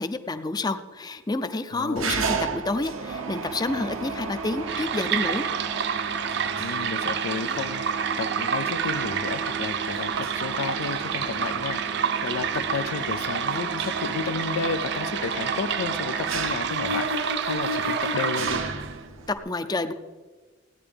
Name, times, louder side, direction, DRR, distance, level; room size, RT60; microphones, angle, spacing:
voice 1, 0.0-5.5 19.4-19.9, left 2 dB, 20° left, 10 dB, 0.5 m, -29 dB
voice 2, 1.7-2.2 6.6-7.8 8.2-18.6, left 5 dB, 90° left, 12 dB, 0.4 m, -32 dB
Mechanisms, 2.0-19.4, right 3 dB, 80° right, 0.9 m, -32 dB
sound 1, 4.7-19.0, right 8 dB, 55° right, 0.4 m, -29 dB
16.0 x 9.7 x 3.4 m, 1.3 s
head